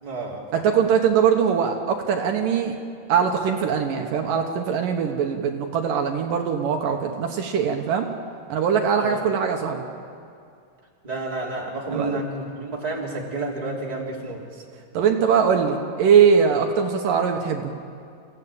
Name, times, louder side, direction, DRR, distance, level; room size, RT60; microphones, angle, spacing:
voice 1, 0.0-0.6 9.0-9.2 11.0-14.4, right 2 dB, 10° right, -3 dB, 2.8 m, -30 dB
voice 2, 0.5-2.8 3.1-8.1 8.5-9.8 11.9-12.2 14.9-17.7, right 7 dB, 70° right, 3 dB, 2.7 m, -21 dB
29.5 x 16.0 x 8.7 m, 2.4 s
omnidirectional pair, 4.2 m